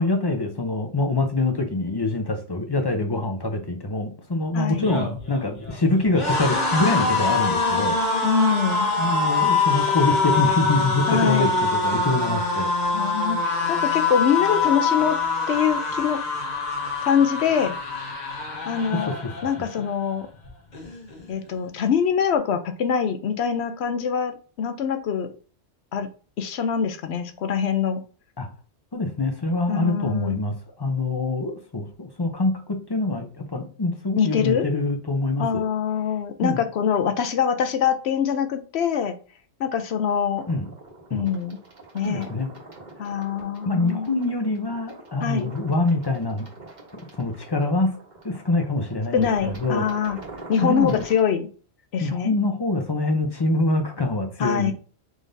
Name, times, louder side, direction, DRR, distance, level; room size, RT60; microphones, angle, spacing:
voice 1, 0.0-8.0 9.0-12.7 19.1-19.3 28.4-28.5 28.9-35.6 36.4-36.6 40.5-40.7 41.1-41.3 42.0-42.5 43.6-46.5 47.1-49.9 50.6-51.0 52.0-54.7, left 2 dB, 30° left, 5 dB, 0.5 m, -25 dB
voice 2, 4.5-4.9 8.2-8.9 11.1-11.5 12.9-15.2 15.5-16.2 17.0-17.8 18.7-19.1 19.4-20.3 21.3-25.3 25.9-26.1 26.4-28.0 29.7-30.4 34.2-34.7 35.4-39.1 39.6-40.4 41.1-41.6 41.9-42.3 43.0-44.1 45.2-45.5 49.1-50.2 50.5-51.5 51.9-52.3 54.4-54.7, left 7 dB, 75° left, 8 dB, 0.9 m, -24 dB
sound 1, 4.7-19.9 20.2-20.5 20.7-21.5, left 3 dB, 45° left, 1.1 m, -24 dB
sound 2, 40.3-51.2, right 2 dB, 40° right, 1.3 m, -44 dB
5.0 x 3.8 x 2.6 m, 0.39 s
omnidirectional pair, 1.1 m